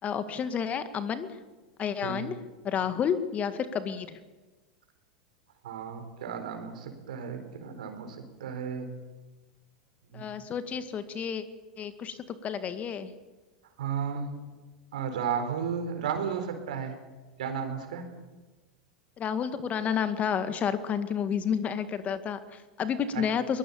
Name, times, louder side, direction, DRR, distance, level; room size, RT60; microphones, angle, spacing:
voice 1, 0.0-1.3 1.8-2.4 2.6-4.2 10.1-11.4 11.8-13.1 19.2-23.6, left 7 dB, 35° left, 11 dB, 1.9 m, -30 dB
voice 2, 5.6-8.9 10.1-10.2 13.8-14.3 14.9-16.9 17.4-18.0 23.1-23.2, right 7 dB, 70° right, 7 dB, 4.3 m, -33 dB
22.5 x 20.0 x 7.2 m, 1.2 s
hypercardioid pair, 90°, 4 cm